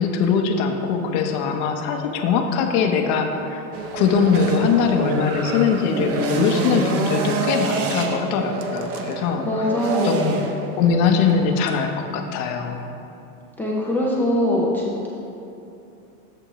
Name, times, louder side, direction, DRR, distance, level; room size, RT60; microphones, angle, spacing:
voice 1, 0.0-3.6 3.9-9.7 10.0-10.4 10.8-12.9, left 6 dB, 40° left, 4 dB, 0.8 m, -21 dB
sound 1, 3.7-11.8, right 4 dB, 30° right, 0.7 m, -27 dB
voice 2, 9.4-10.4 13.6-15.1, left 1 dB, 5° left, -5 dB, 0.4 m, -22 dB
11.5 x 7.8 x 3.1 m, 2.8 s
supercardioid pair, 155°, 43 cm